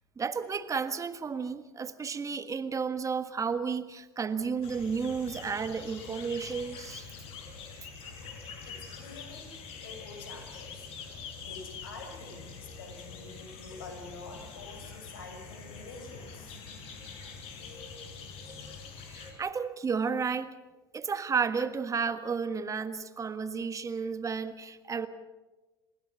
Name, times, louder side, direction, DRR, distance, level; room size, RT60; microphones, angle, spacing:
voice 1, 0.2-7.1 19.1-20.5 20.9-25.1, right 5 dB, 25° right, 11 dB, 1.5 m, -32 dB
sound 1, 4.6-19.3, left 5 dB, 55° left, 6.2 m, -45 dB
voice 2, 8.6-10.9 11.4-16.7, left 3 dB, 75° left, 5 dB, 6.3 m, -47 dB
29.5 x 17.0 x 7.0 m, 1.2 s
hypercardioid pair, 80°, 12 cm